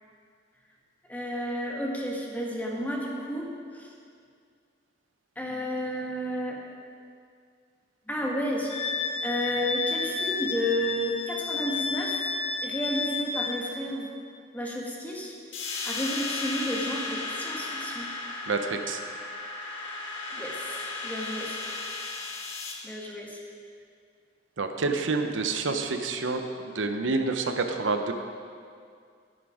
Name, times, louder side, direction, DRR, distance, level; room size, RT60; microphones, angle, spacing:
voice 1, 1.1-3.9 5.3-6.6 8.1-8.8 9.2-12.2 12.6-14.1 14.5-15.3 15.8-18.1 20.3-21.6 22.8-23.4 25.7-25.8, equal, 10° left, -2 dB, 1.6 m, -32 dB
Wind instrument woodwind instrument, 8.7-13.6, left 4 dB, 30° left, 1.1 m, -31 dB
sound 1, 15.5-22.7, left 3 dB, 85° left, 1.8 m, -35 dB
voice 2, 18.5-19.0 24.6-28.1, right 3 dB, 90° right, 5 dB, 0.9 m, -28 dB
13.0 x 10.5 x 5.0 m, 2.3 s
head